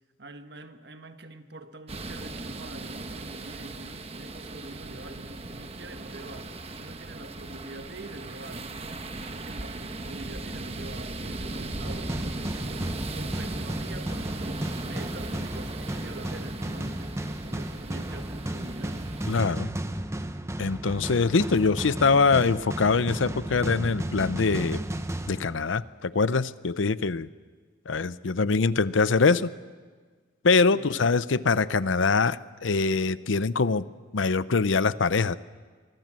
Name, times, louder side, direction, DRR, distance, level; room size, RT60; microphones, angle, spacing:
voice 1, 0.2-19.0 30.7-31.0, right 2 dB, 60° right, 7 dB, 1.5 m, -45 dB
sound 1, 1.9-19.4, right 2 dB, 30° right, 1.1 m, -38 dB
sound 2, 11.8-26.0, right 1 dB, 15° right, 0.8 m, -34 dB
voice 2, 19.3-19.7 20.6-24.8 25.3-27.3 27.9-29.5 30.4-33.9 34.1-35.4, left 4 dB, 90° left, 16 dB, 0.7 m, -23 dB
25.5 x 23.0 x 7.6 m, 1.5 s
head